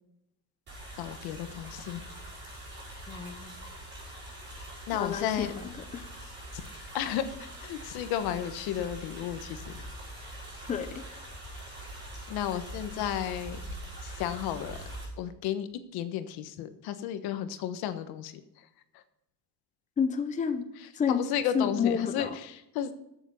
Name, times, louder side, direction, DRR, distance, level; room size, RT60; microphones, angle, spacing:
sound 1, 0.7-15.1, right 1 dB, 30° right, 5.4 m, -43 dB
voice 1, 1.0-2.0 4.9-5.5 6.5-6.6 6.9-9.7 12.3-13.6 14.0-14.8 15.2-18.3 18.9-19.0 20.8-23.0, left 10 dB, 75° left, 10 dB, 1.3 m, -33 dB
voice 2, 3.1-3.5 4.9-5.5 5.9-6.0 10.7-11.0 20.0-20.7 21.0-21.2 21.5-22.3, left 6 dB, 20° left, 8 dB, 0.8 m, -29 dB
14.0 x 7.2 x 5.4 m, 0.85 s
cardioid pair, 170°, 37 cm